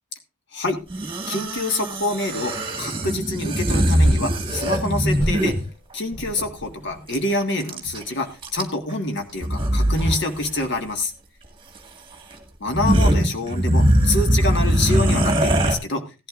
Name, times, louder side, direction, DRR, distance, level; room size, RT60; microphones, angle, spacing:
sound 1, 0.9-5.7 7.1-7.2 7.4-8.0 8.4-8.9 9.4-10.2 10.4-10.6 11.7-11.8 12.3-12.4 12.7-15.7, right 1 dB, 20° right, 1.6 m, -21 dB
voice 1, 1.3-5.6 5.9-11.1 12.6-16.3, left 2 dB, 50° left, 5 dB, 1.6 m, -26 dB
sound 2, 3.8-5.7 6.1-7.5 7.8-8.0, right 1 dB, 65° left, 4.1 m, -33 dB
16.5 x 11.5 x 2.4 m, 0.29 s
head